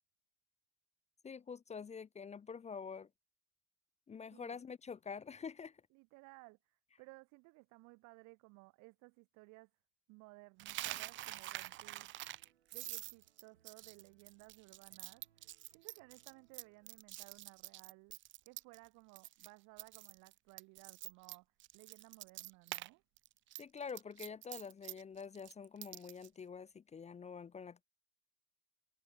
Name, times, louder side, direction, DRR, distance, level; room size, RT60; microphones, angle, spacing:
voice 1, 1.2-3.1 4.1-5.8 23.6-27.8, left 6 dB, 20° left, 0.6 m, -47 dB
voice 2, 5.9-9.7 10.1-12.1 12.7-18.2 18.5-21.5 21.7-23.0, right 27 dB, 65° right, 1.6 m, -59 dB
Coin (dropping), 10.6-18.9 19.2-19.5 19.8-22.9 23.2-26.3, right 15 dB, 40° right, 0.4 m, -47 dB
sound 1, 10.8-17.0, right 10 dB, 90° right, 2.7 m, -74 dB
hypercardioid pair, 70°, 32 cm